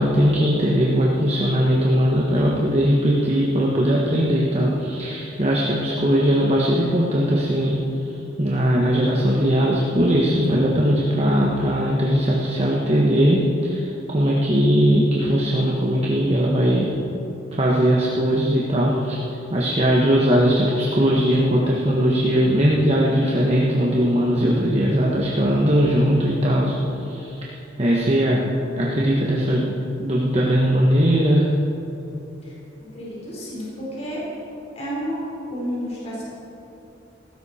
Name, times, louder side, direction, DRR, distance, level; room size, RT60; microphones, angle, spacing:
voice 1, 0.0-7.8 8.4-16.9 17.6-27.4 27.8-28.4 28.8-29.7 30.0-31.5, equal, 35° right, -4 dB, 1.4 m, -19 dB
voice 2, 32.9-34.2 34.7-35.2 35.5-36.2, equal, 35° left, -6 dB, 4.3 m, -30 dB
17.5 x 15.5 x 4.4 m, 3.0 s
head